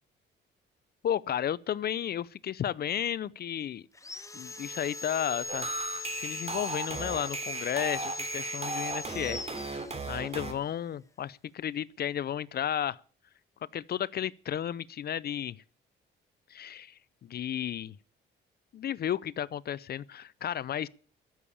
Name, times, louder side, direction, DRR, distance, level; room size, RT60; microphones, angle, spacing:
voice 1, 1.0-3.9 4.3-13.0 13.7-15.6 16.5-16.9 17.2-17.9 18.7-20.9, left 10 dB, 55° left, 0.6 m, -33 dB
Sawing, 3.9-10.4, left 2 dB, 15° left, 1.0 m, -40 dB
sound 1, 5.5-10.5, right 3 dB, 30° right, 3.3 m, -36 dB
13.5 x 7.1 x 9.9 m
cardioid pair, 90°, 20 cm